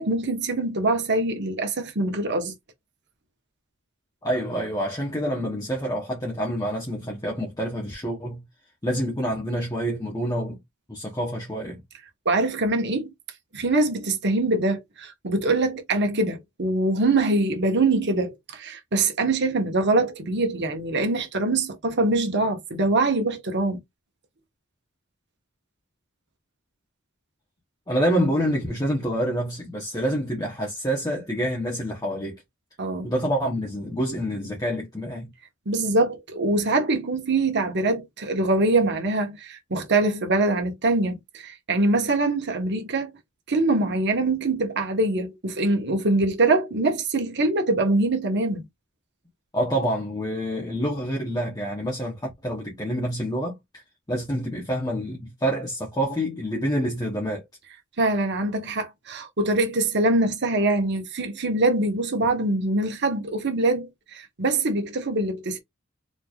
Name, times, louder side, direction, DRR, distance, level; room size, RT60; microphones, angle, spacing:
voice 1, 0.0-2.5 12.2-13.1 13.5-23.8 32.8-33.1 35.7-43.1 43.5-48.6 58.0-65.6, right 2 dB, 55° right, 1.2 m, -23 dB
voice 2, 4.2-8.4 8.8-10.6 10.9-11.8 27.9-32.4 33.0-35.3 49.5-53.8 54.1-57.4, equal, 20° left, 1.0 m, -27 dB
4.2 x 3.3 x 2.4 m
head